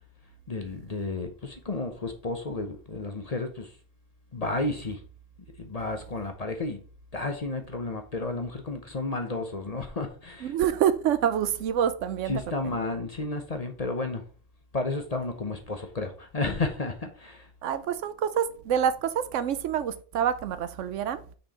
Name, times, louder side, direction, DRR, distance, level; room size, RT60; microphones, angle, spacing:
voice 1, 0.5-3.7 4.3-5.0 5.6-6.8 7.1-10.5 12.3-14.2 14.7-17.5, left 3 dB, 35° left, 0.8 m, -32 dB
voice 2, 10.4-12.8 17.6-21.2, right 9 dB, 75° right, 1.0 m, -27 dB
6.1 x 4.4 x 4.2 m
omnidirectional pair, 1.3 m